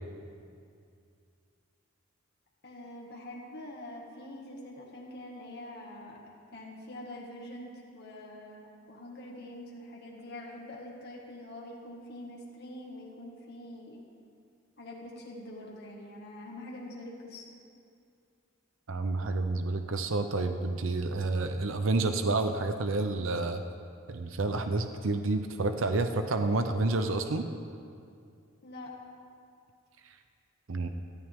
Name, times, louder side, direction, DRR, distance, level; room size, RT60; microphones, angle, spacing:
voice 1, 2.6-6.2 6.5-14.0 14.8-17.4 28.6-28.9, left 1 dB, 55° left, -3 dB, 2.1 m, -45 dB
voice 2, 18.9-23.6 24.1-27.5 30.7-30.9, right 2 dB, 70° right, 7 dB, 0.7 m, -29 dB
18.0 x 13.0 x 3.7 m, 2.4 s
head